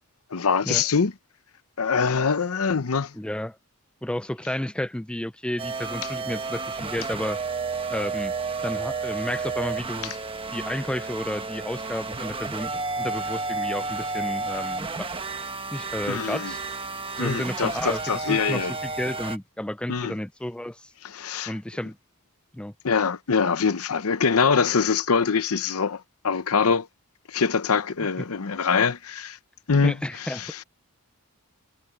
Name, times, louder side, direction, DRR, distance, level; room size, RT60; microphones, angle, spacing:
voice 1, 0.3-1.1 1.8-3.1 16.1-16.5 17.2-18.7 19.9-20.1 21.0-21.5 22.8-26.9 27.3-29.4 29.7-30.6, left 5 dB, 70° left, 0.8 m, -24 dB
voice 2, 3.1-3.6 4.0-7.4 7.9-8.3 8.6-10.1 10.5-15.1 15.7-16.6 17.2-22.0 22.5-22.7 28.2-28.3 29.8-30.6, left 1 dB, 5° left, 0.4 m, -32 dB
sound 1, 5.6-19.4, right 4 dB, 25° right, 1.2 m, -31 dB
head